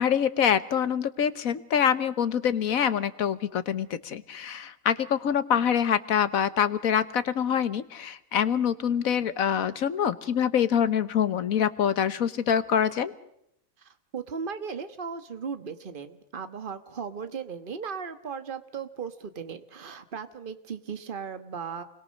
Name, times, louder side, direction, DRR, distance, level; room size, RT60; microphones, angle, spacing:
voice 1, 0.0-13.1, left 8 dB, 90° left, 14 dB, 1.5 m, -25 dB
voice 2, 14.1-21.8, right 6 dB, 40° right, 10 dB, 1.5 m, -36 dB
29.0 x 21.5 x 6.5 m, 0.77 s
omnidirectional pair, 1.4 m